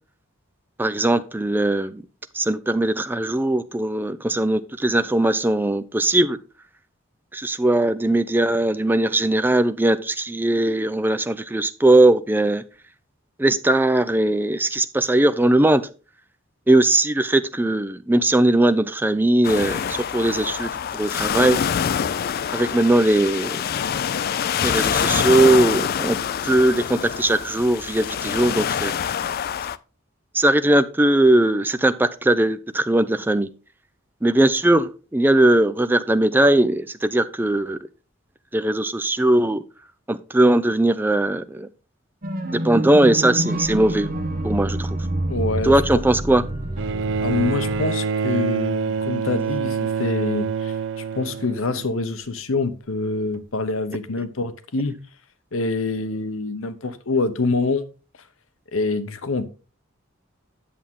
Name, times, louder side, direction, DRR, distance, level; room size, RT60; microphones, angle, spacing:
voice 1, 0.8-2.0 2.3-6.4 7.3-12.6 13.4-15.9 16.7-21.6 22.5-23.6 24.6-28.9 30.3-33.5 34.2-37.8 38.5-39.6 40.1-41.7 42.5-44.1 44.4-44.9 45.6-46.4, right 1 dB, 10° right, 0.5 m, -19 dB
sound 1, 19.4-29.8, left 8 dB, 50° left, 0.4 m, -25 dB
sound 2, 42.2-47.9, right 1 dB, 45° right, 1.3 m, -27 dB
voice 2, 45.2-45.8 47.2-50.7 51.2-55.0 55.5-57.9 58.7-59.5, left 3 dB, 85° left, 0.9 m, -25 dB
Bowed string instrument, 46.8-52.2 53.3-53.4, right 5 dB, 65° right, 0.6 m, -26 dB
8.5 x 7.4 x 3.6 m
head